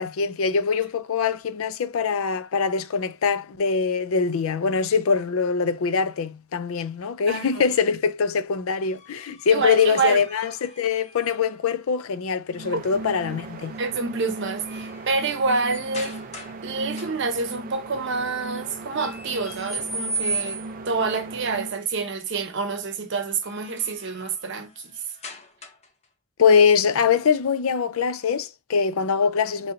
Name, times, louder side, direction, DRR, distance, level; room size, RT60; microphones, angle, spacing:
voice 1, 0.0-13.8 26.4-29.7, left 6 dB, 90° left, 0.4 m, -23 dB
sound 1, 8.8-11.7 13.5-13.8 14.2-16.6 16.9-17.5 19.0-20.9 23.2-26.0, right 2 dB, 30° left, 0.7 m, -37 dB
voice 2, 9.5-10.2 12.7-12.8 13.8-16.2 16.6-25.0, right 4 dB, 60° right, 0.8 m, -27 dB
sound 2, 12.5-21.8, right 3 dB, 40° right, 0.3 m, -37 dB
3.1 x 2.7 x 3.7 m
head